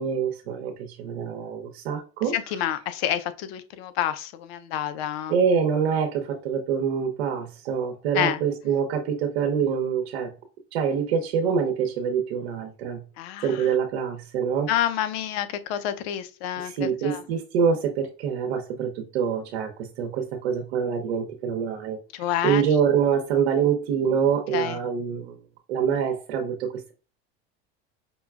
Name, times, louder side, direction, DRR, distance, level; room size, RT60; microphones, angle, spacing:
voice 1, 0.0-2.6 5.3-10.3 10.7-13.0 13.4-14.7 16.6-22.0 22.4-25.4 25.7-26.9, right 7 dB, 85° right, 0.8 m, -25 dB
voice 2, 2.3-5.4 8.1-8.4 13.2-13.7 14.7-17.2 22.1-22.7 24.5-24.8, left 11 dB, 80° left, 0.6 m, -28 dB
5.4 x 2.2 x 2.3 m
supercardioid pair, 100°, 31 cm